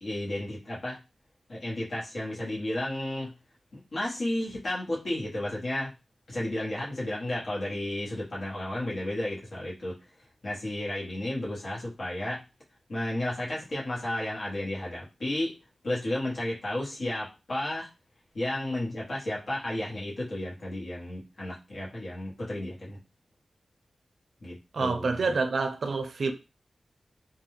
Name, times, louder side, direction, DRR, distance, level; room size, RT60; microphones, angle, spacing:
voice 1, 0.0-1.0 1.5-3.3 3.9-5.9 6.3-9.9 10.4-12.4 12.9-15.5 15.8-17.9 18.3-23.0 24.4-25.3, left 1 dB, 70° left, 1.1 m, -33 dB
voice 2, 24.7-26.3, right 4 dB, 75° right, 0.4 m, -27 dB
2.3 x 2.2 x 3.1 m
wide cardioid pair, 100°, 0 cm